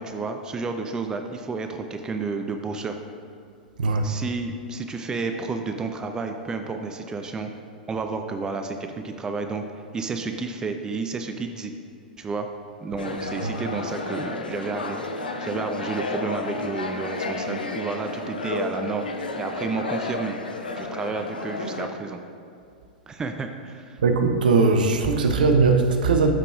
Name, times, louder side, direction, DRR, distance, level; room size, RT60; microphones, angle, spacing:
voice 1, 0.0-3.0 4.0-7.5 7.9-9.6 9.9-11.7 12.2-12.5 12.8-19.1 19.4-20.3 20.8-22.2 23.1-24.0, right 4 dB, 15° right, 5 dB, 0.4 m, -31 dB
sound 1, 13.0-21.9, left 2 dB, 75° left, 0.6 m, -32 dB
voice 2, 24.0-26.3, right 4 dB, 65° right, 6 dB, 0.6 m, -19 dB
13.5 x 4.7 x 2.4 m, 2.4 s
figure-of-eight pair, 95°, 5 cm